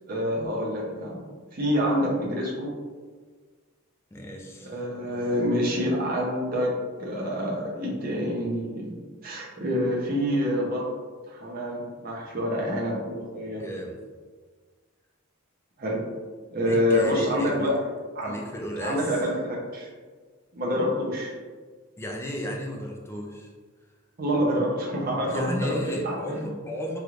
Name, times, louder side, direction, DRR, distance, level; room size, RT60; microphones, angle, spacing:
voice 1, 0.1-1.2 1.5-2.7 4.6-6.7 7.0-8.9 9.2-10.9 11.3-13.7 15.8-16.0 16.5-17.7 18.1-18.4 18.8-19.9 20.5-21.3 24.2-25.8 26.0-26.5, equal, 45° right, -3 dB, 0.7 m, -27 dB
voice 2, 4.1-4.7 13.6-14.0 16.6-17.7 18.2-19.1 22.0-23.5 25.3-27.0, equal, 10° left, 0 dB, 0.3 m, -33 dB
3.1 x 3.1 x 2.4 m, 1.5 s
head